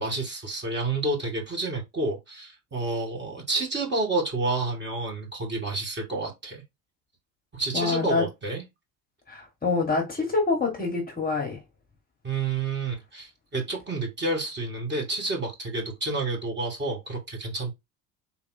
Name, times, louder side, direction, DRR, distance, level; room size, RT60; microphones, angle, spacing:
voice 1, 0.0-6.6 7.5-8.6 12.2-17.7, right 2 dB, 25° right, 2.3 m, -29 dB
voice 2, 7.7-8.2 9.3-11.6, left 4 dB, 20° left, 1.6 m, -26 dB
4.1 x 2.8 x 4.2 m
figure-of-eight pair, 65°, 44 cm